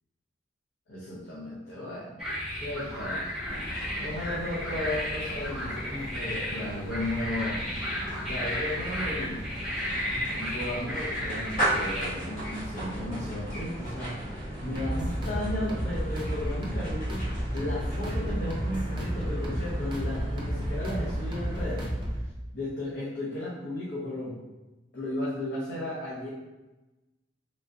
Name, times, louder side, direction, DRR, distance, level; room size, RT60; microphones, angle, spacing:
voice 1, 0.9-2.2 2.6-3.3 4.0-7.6 8.3-9.4 10.0-14.1 14.6-17.3 17.5-21.9 22.5-24.4 24.9-26.3, left 1 dB, 60° left, -8 dB, 0.7 m, -34 dB
sound 1, 2.2-12.1, equal, ahead, 1.0 m, -34 dB
sound 2, 3.5-22.1, right 1 dB, 45° left, 1.1 m, -37 dB
sound 3, 14.8-22.3, equal, 25° right, 0.5 m, -32 dB
3.2 x 2.4 x 2.5 m, 1.1 s
head